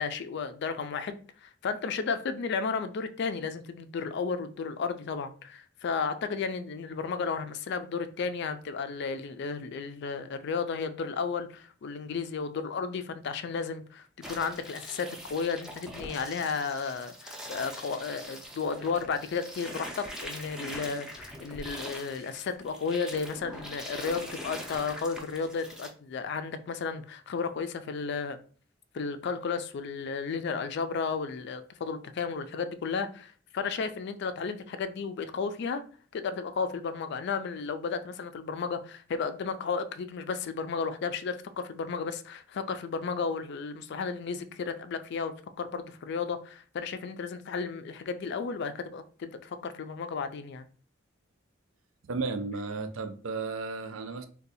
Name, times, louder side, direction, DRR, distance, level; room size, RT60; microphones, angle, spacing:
voice 1, 0.0-28.4 28.9-35.8 36.1-50.7, left 5 dB, 60° left, 0.3 m, -33 dB
sound 1, 14.2-25.9, equal, 5° right, 0.5 m, -43 dB
voice 2, 52.1-54.3, right 4 dB, 85° right, 0.5 m, -34 dB
2.6 x 2.3 x 4.0 m
head